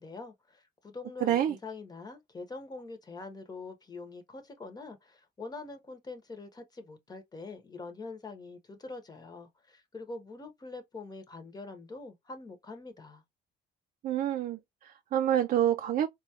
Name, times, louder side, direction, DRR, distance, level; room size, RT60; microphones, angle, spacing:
voice 1, 0.0-13.2, left 3 dB, 25° left, 0.9 m, -44 dB
voice 2, 1.2-1.6 14.0-16.1, right 11 dB, 50° right, 0.4 m, -27 dB
4.0 x 2.3 x 2.8 m
cardioid pair, 110°, 17 cm